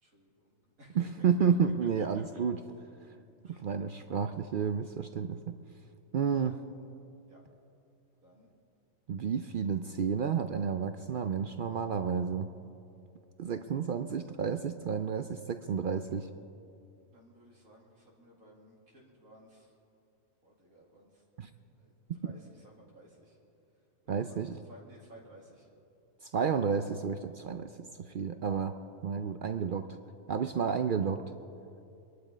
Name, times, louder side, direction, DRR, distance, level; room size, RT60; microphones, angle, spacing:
voice 1, 0.0-2.1 3.4-3.7 6.4-6.9 7.3-7.4 8.2-8.5 9.4-9.7 17.0-19.7 20.4-21.2 21.7-23.4 24.0-25.7, equal, 85° right, -3 dB, 2.7 m, -56 dB
voice 2, 1.0-2.6 3.5-5.5 6.1-6.6 9.1-12.5 13.4-16.3 21.4-21.5 24.1-24.6 26.2-27.7 28.0-28.7 29.0-29.9 30.3-31.2, right 6 dB, 65° right, 9 dB, 0.5 m, -31 dB
23.5 x 11.5 x 5.0 m, 2.6 s
omnidirectional pair, 1.4 m